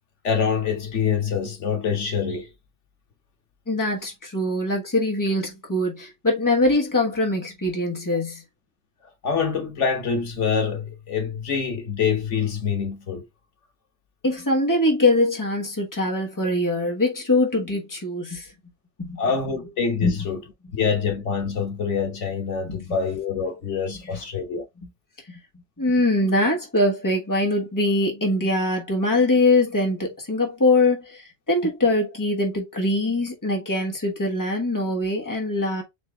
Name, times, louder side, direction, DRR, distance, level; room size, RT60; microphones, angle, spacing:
voice 1, 0.2-2.5 9.2-13.3 19.2-20.4 20.7-24.6, left 6 dB, 85° left, 1.5 m, -25 dB
voice 2, 3.7-8.4 14.2-18.5 19.0-19.2 20.0-20.3 20.6-20.7 22.6-22.8 24.8-24.9 25.3-25.4 25.8-35.8, left 2 dB, 15° left, 1.3 m, -23 dB
4.5 x 2.7 x 3.5 m
omnidirectional pair, 1.2 m